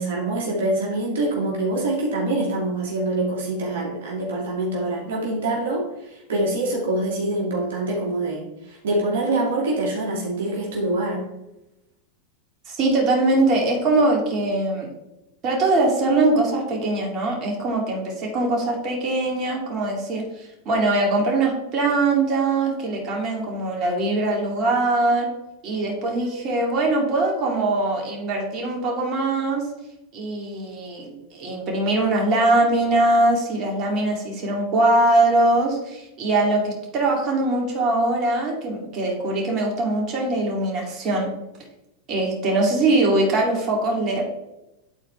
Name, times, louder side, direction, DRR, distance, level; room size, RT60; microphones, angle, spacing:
voice 1, 0.0-11.2, right 2 dB, 75° right, -3 dB, 2.4 m, -25 dB
voice 2, 12.7-14.9 15.4-25.3 25.6-29.7 30.1-41.3 42.1-44.2, right 2 dB, 40° right, -1 dB, 2.6 m, -22 dB
11.5 x 4.4 x 3.4 m, 0.92 s
hypercardioid pair, 100°, 0 cm